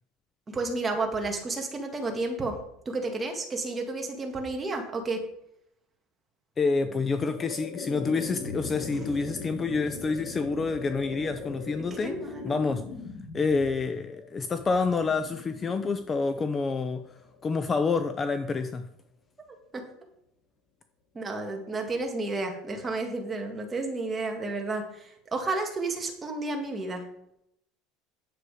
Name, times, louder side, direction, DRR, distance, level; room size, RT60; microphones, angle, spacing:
voice 1, 0.5-2.6 2.9-5.2 12.0-12.5 19.5-19.8 21.1-27.0, right 3 dB, 15° right, 2 dB, 2.0 m, -31 dB
voice 2, 6.6-12.1 12.4-12.8 13.3-17.0 17.4-18.8, left 4 dB, 20° left, 9 dB, 0.6 m, -28 dB
sound 1, 6.8-17.9, left 4 dB, 80° left, 3.2 m, -41 dB
9.7 x 7.7 x 4.9 m, 0.78 s
cardioid pair, 145°, 0 cm